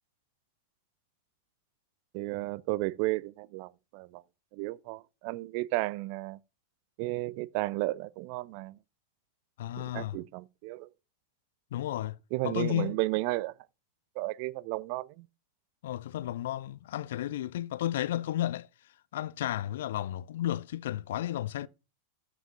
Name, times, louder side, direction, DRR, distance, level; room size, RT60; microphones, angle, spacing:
voice 1, 2.1-4.2 4.5-6.4 7.0-8.8 9.8-10.9 12.3-13.5 14.2-15.3, right 20 dB, 45° right, 0.3 m, -33 dB
voice 2, 9.6-10.2 11.7-12.2 12.4-13.0 15.8-18.7 19.1-21.7, left 12 dB, 55° left, 0.3 m, -33 dB
13.5 x 6.0 x 2.5 m
figure-of-eight pair, 90°, 0 cm